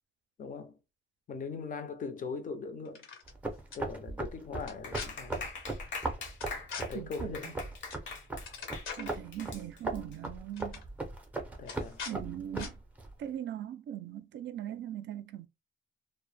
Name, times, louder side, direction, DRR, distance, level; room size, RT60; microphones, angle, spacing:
voice 1, 0.4-0.8 1.3-3.1 3.7-5.5 6.8-7.6 11.6-12.0, left 4 dB, 40° left, 0.5 m, -40 dB
sound 1, 2.8-3.3 3.7-3.8 4.6-5.1 6.4-6.8 7.9-8.1 8.3-9.2 10.1-10.3 10.5-10.8 11.6-12.1 12.6-12.7, left 5 dB, 80° left, 1.0 m, -42 dB
sound 2, 3.3-13.1, right 2 dB, 10° right, 0.5 m, -39 dB
Clapping, 4.8-10.1, left 4 dB, 65° left, 0.8 m, -43 dB
voice 2, 6.9-7.5 9.0-10.8 12.1-12.8 13.2-15.5, right 11 dB, 65° right, 0.4 m, -40 dB
2.1 x 2.0 x 3.2 m
cardioid pair, 125°, 21 cm